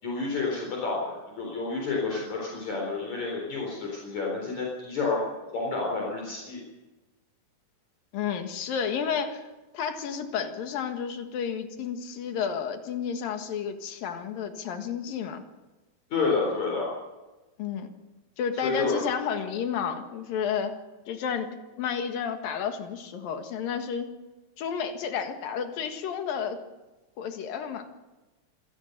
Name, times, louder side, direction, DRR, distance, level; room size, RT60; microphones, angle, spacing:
voice 1, 0.0-5.2 5.5-6.6 16.1-16.9 18.6-19.0, left 4 dB, 55° left, -1 dB, 5.3 m, -29 dB
voice 2, 8.1-9.5 9.7-15.4 17.6-17.9 18.4-20.8 21.1-21.5 21.8-24.1 24.6-26.6 27.2-27.9, left 7 dB, 80° left, 6 dB, 3.5 m, -31 dB
26.0 x 17.0 x 6.7 m, 1.1 s
omnidirectional pair, 4.0 m